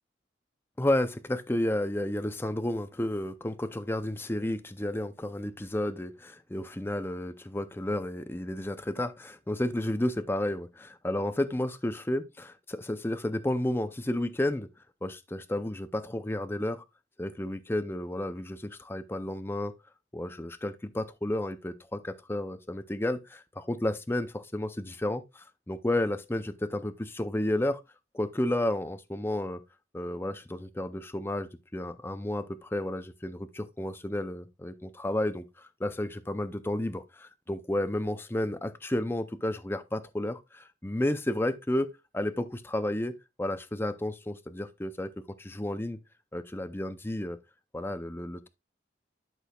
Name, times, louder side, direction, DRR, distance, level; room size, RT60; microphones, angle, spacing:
voice 1, 0.8-14.7 15.0-16.8 17.2-19.7 20.1-27.8 28.1-29.6 29.9-45.1 45.4-46.0 46.3-47.4 47.7-48.5, left 1 dB, 15° left, 0.5 m, -32 dB
11.0 x 6.1 x 2.3 m
head